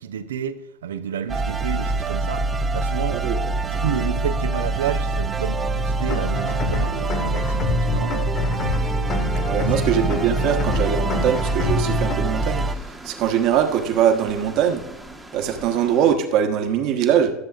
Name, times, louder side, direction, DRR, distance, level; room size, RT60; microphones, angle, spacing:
voice 1, 0.0-3.3 3.7-8.2 9.5-10.1, right 9 dB, 75° right, 0.6 m, -30 dB
sound 1, 1.3-12.8, right 2 dB, 20° right, 0.5 m, -25 dB
sound 2, 1.8-16.1, left 1 dB, 5° right, 1.0 m, -40 dB
sound 3, 6.0-12.1, left 3 dB, 40° left, 1.6 m, -27 dB
voice 2, 9.4-12.6 13.0-14.8 15.3-17.3, right 8 dB, 50° right, 1.2 m, -21 dB
13.0 x 7.5 x 2.4 m
figure-of-eight pair, 85°, 0 cm